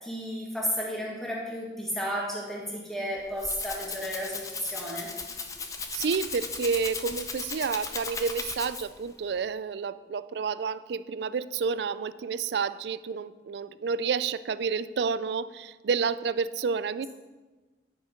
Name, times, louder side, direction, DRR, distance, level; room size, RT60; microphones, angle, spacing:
voice 1, 0.0-5.1, equal, ahead, -5 dB, 1.8 m, -33 dB
Rattle (instrument), 3.1-9.1, left 4 dB, 20° left, 0.6 m, -37 dB
voice 2, 5.9-17.1, right 5 dB, 70° right, 16 dB, 0.4 m, -30 dB
10.5 x 6.4 x 5.1 m, 1.3 s
head